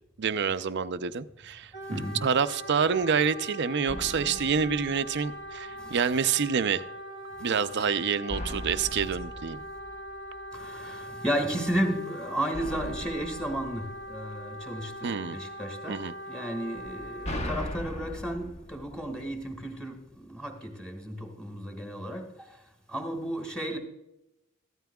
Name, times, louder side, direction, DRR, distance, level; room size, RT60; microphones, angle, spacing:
voice 1, 0.2-6.8 7.4-9.6 15.0-15.4 15.9-16.1, right 6 dB, 55° right, 0.5 m, -27 dB
Wind instrument woodwind instrument, 1.7-17.6, equal, 50° left, 3.3 m, -41 dB
voice 2, 1.9-2.3 5.8-6.0 7.8-7.9 9.0-9.1 10.5-16.0 16.3-22.3 22.9-23.8, equal, 5° left, 1.9 m, -33 dB
sound 1, 3.9-5.8 8.3-10.7 12.5-14.8 16.8-19.8, equal, 30° left, 1.0 m, -39 dB
14.5 x 13.0 x 2.3 m
head